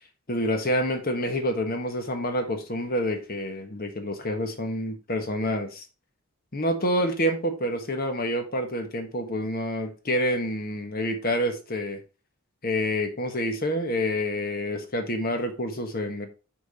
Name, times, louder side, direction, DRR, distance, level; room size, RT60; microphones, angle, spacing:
voice 1, 0.3-5.8 6.5-12.0 12.6-16.3, equal, 45° left, 6 dB, 1.3 m, -28 dB
6.1 x 5.0 x 4.3 m, 0.31 s
head